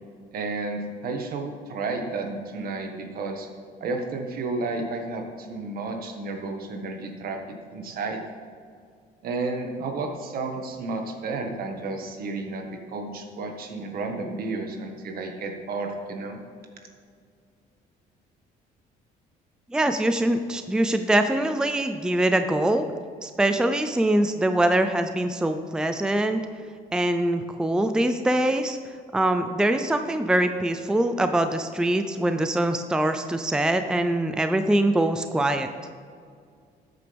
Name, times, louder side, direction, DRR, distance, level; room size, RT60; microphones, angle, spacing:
voice 1, 0.3-3.5 3.8-7.4 7.7-8.2 9.2-16.4, right 3 dB, 60° right, 3 dB, 1.7 m, -32 dB
voice 2, 19.7-22.9 23.2-26.4 26.9-28.8 29.1-35.7, right 1 dB, 5° right, 8 dB, 0.5 m, -23 dB
13.5 x 8.4 x 3.5 m, 2.2 s
cardioid pair, 110°, 17 cm